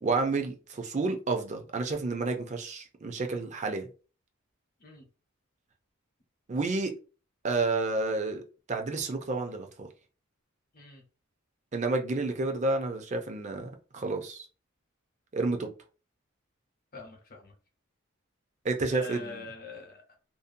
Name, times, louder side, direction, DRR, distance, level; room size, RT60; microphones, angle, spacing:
voice 1, 0.0-3.9 6.5-6.9 7.4-9.9 11.7-14.5 15.3-15.7 18.6-19.4, right 3 dB, 35° right, 0.5 m, -30 dB
voice 2, 16.9-17.5 18.9-20.2, left 3 dB, 45° left, 0.8 m, -44 dB
2.6 x 2.1 x 2.5 m
head